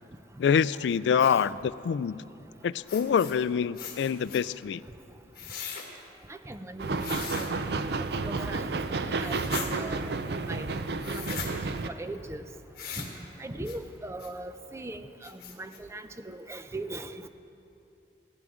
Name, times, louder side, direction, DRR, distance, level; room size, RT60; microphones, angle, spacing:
voice 1, 0.4-2.2 2.6-4.8, left 7 dB, 80° left, 18 dB, 0.3 m, -26 dB
sound 1, 2.9-3.4 3.8-4.4 5.3-5.9 7.0-7.5 9.2-9.7 11.0-11.5 12.8-13.1 13.7-13.8 14.2-14.3 14.8-14.9 15.2-15.8, left 7 dB, 55° left, 1.6 m, -39 dB
voice 2, 6.3-7.5 8.0-8.7 9.2-10.0 10.4-10.7 11.1-11.6 11.9-12.4 13.0-13.1 13.4-17.3, right 2 dB, 15° right, 9 dB, 0.5 m, -40 dB
sound 2, 6.8-11.9, right 3 dB, 65° right, 0.5 m, -31 dB
16.5 x 14.5 x 3.7 m, 2.8 s
head